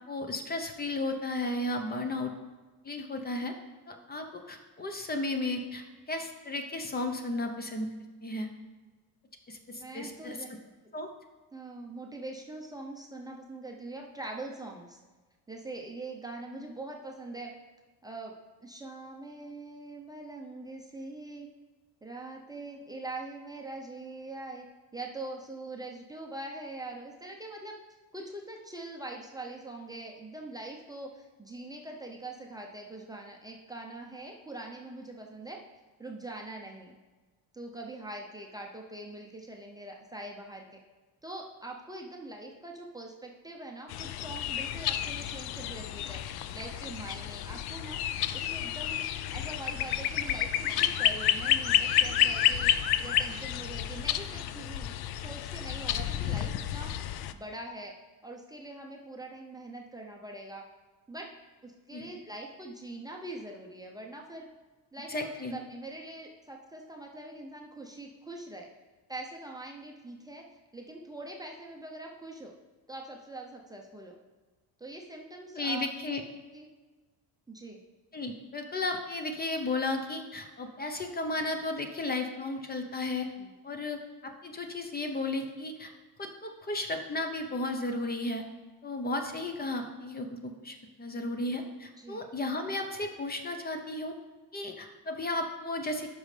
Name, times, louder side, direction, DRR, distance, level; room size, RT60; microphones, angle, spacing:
voice 1, 0.0-2.3 2.8-3.5 3.9-7.9 8.2-8.5 9.5-10.4 10.9-11.1 61.9-62.1 65.1-65.6 75.6-76.2 78.1-83.3 83.6-85.9 86.2-88.4 88.8-94.1 94.5-96.1, left 2 dB, 25° left, 5 dB, 0.7 m, -34 dB
voice 2, 9.7-10.5 11.5-15.0 15.5-17.5 18.0-18.3 18.6-21.5 22.0-24.6 24.9-27.8 28.1-35.6 36.0-36.9 37.5-40.8 41.2-48.0 48.3-49.0 49.3-52.7 53.0-56.9 57.3-57.9 58.2-60.6 61.1-61.3 61.6-64.5 64.9-68.7 69.1-70.5 70.7-72.5 72.9-74.2 74.8-75.9 76.5-76.7 77.5-77.8 83.4-83.5 92.0-92.3, right 2 dB, 10° right, 0 dB, 0.6 m, -43 dB
sound 1, 43.9-57.3, left 11 dB, 75° left, 0.5 m, -30 dB
12.5 x 5.4 x 3.3 m, 1.3 s
cardioid pair, 130°, 38 cm